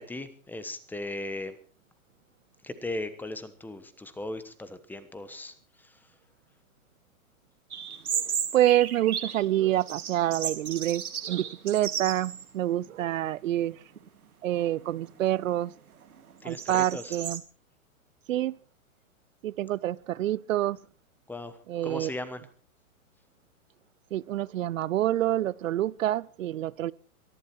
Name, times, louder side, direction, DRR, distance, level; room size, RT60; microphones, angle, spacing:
voice 1, 0.0-1.6 2.6-5.5 16.4-17.1 21.3-21.6 21.8-22.4, left 2 dB, 5° left, 1.1 m, -37 dB
sound 1, 7.7-9.5 9.8-12.5 12.9-13.0 13.7-14.1 14.6-17.4, right 8 dB, 90° right, 2.5 m, -35 dB
voice 2, 8.5-13.8 14.4-15.7 16.4-17.4 18.3-18.6 19.4-20.8 21.7-22.1 24.1-26.9, right 13 dB, 65° right, 0.6 m, -27 dB
23.0 x 11.0 x 4.5 m
hypercardioid pair, 135°, 42 cm